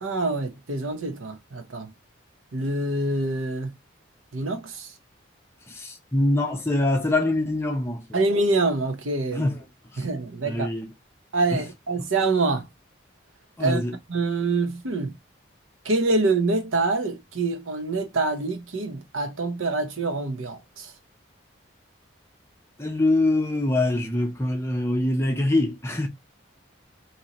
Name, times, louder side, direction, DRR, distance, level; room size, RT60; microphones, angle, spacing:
voice 1, 0.0-1.9 2.5-3.7 4.3-4.9 8.1-9.4 10.0-10.7 11.3-12.6 13.6-13.8 14.1-15.1 15.8-20.9, right 3 dB, 85° right, 0.8 m, -25 dB
voice 2, 5.7-8.2 9.3-9.6 9.9-10.1 10.4-10.9 11.5-11.6 13.6-13.9 22.8-26.1, left 2 dB, 15° left, 0.7 m, -24 dB
3.8 x 2.8 x 2.9 m
head